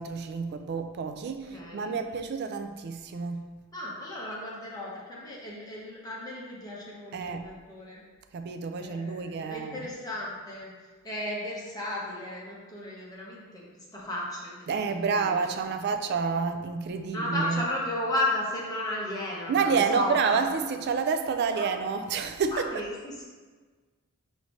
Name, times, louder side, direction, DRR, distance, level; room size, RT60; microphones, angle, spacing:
voice 1, 0.0-3.4 7.1-7.4 8.3-9.9 14.7-17.6 19.5-22.7, right 5 dB, 50° right, 7 dB, 0.3 m, -29 dB
voice 2, 1.5-2.0 3.7-8.0 8.8-10.7 11.0-13.7 13.9-15.6 17.1-20.4 21.5-21.7 22.5-23.2, left 1 dB, 15° left, -5 dB, 0.8 m, -34 dB
4.9 x 2.7 x 3.1 m, 1.4 s
head